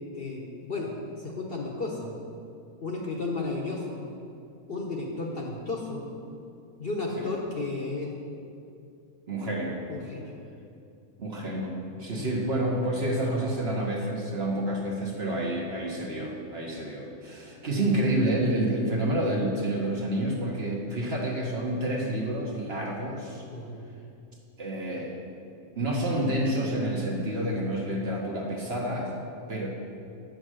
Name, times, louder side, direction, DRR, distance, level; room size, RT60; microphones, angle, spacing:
voice 1, 0.1-2.1 2.8-4.1 4.7-6.0 6.8-8.1 9.9-10.4 12.1-12.4 23.5-23.8, left 3 dB, 45° left, -1 dB, 1.0 m, -33 dB
voice 2, 9.3-9.8 11.2-23.4 24.6-25.1 25.8-29.1 29.5-29.7, right 1 dB, 45° right, -2 dB, 1.2 m, -29 dB
8.7 x 6.4 x 6.4 m, 2.6 s
omnidirectional pair, 1.6 m